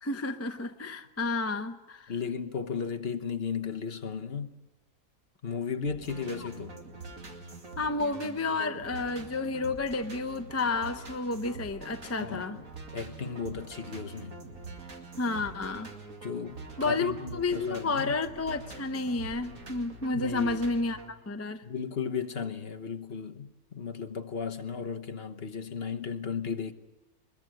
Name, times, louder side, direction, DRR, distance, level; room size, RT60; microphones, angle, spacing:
voice 1, 0.0-2.1 6.4-6.5 7.8-12.6 15.2-15.9 16.8-21.6, left 3 dB, 15° left, 0.5 m, -31 dB
voice 2, 2.1-4.6 5.4-6.8 12.2-12.6 12.9-14.4 16.2-18.1 20.1-20.6 21.6-26.7, left 6 dB, 45° left, 1.2 m, -35 dB
sound 1, 5.9-21.1, right 3 dB, 60° right, 2.6 m, -45 dB
23.0 x 21.0 x 7.7 m
omnidirectional pair, 1.6 m